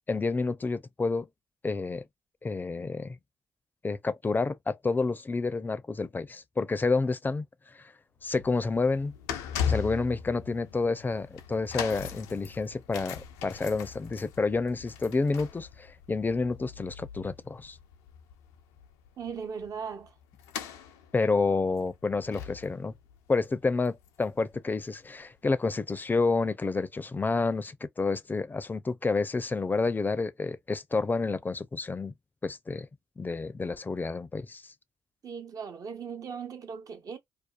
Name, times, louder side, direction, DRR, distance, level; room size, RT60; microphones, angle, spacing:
voice 1, 0.1-1.3 1.6-2.0 2.4-3.2 3.8-7.4 7.7-7.8 8.2-9.1 9.7-17.8 21.1-22.9 23.3-32.1 32.4-32.9 33.2-34.7, left 3 dB, 25° left, 0.4 m, -29 dB
sound 1, 8.2-24.6 24.8-25.1 25.8-25.9, left 8 dB, 90° left, 0.4 m, -39 dB
voice 2, 19.2-20.1 35.2-37.2, right 6 dB, 55° right, 0.7 m, -38 dB
2.5 x 2.3 x 2.3 m
hypercardioid pair, 45°, 7 cm